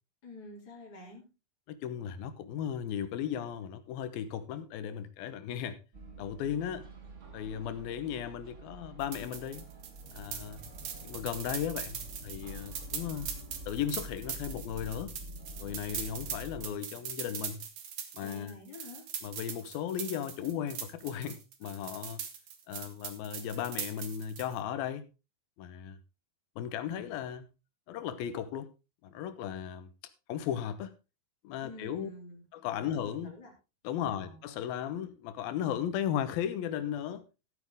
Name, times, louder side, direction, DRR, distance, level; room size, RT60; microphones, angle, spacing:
voice 1, 0.2-1.2 18.2-19.1 31.6-32.4 32.8-32.9 33.2-33.5 34.0-34.4, left 1 dB, 25° left, 3.8 m, -48 dB
voice 2, 1.7-5.8 6.2-6.8 7.3-9.7 10.1-10.6 11.0-13.3 13.7-15.1 15.6-17.6 18.1-18.6 19.2-22.2 22.7-25.0 25.6-26.0 26.6-27.5 27.9-28.7 29.0-29.9 30.3-30.9 31.4-32.1 32.5-33.3 33.8-37.2, left 9 dB, 80° left, 2.9 m, -36 dB
sound 1, 5.9-16.7, right 1 dB, 85° right, 0.6 m, -47 dB
sound 2, 9.0-24.6, right 8 dB, 60° right, 2.8 m, -41 dB
14.5 x 9.3 x 3.7 m
omnidirectional pair, 4.3 m